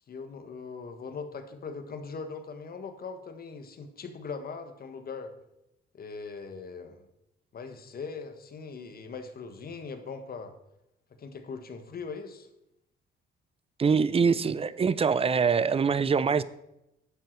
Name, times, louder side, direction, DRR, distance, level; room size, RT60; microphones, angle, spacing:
voice 1, 0.1-5.3 5.9-7.0 7.5-10.5 11.2-12.5, left 5 dB, 50° left, 7 dB, 1.5 m, -40 dB
voice 2, 13.8-16.4, right 5 dB, 30° right, 17 dB, 0.5 m, -24 dB
11.0 x 7.6 x 4.6 m, 0.85 s
cardioid pair, 90°, 20 cm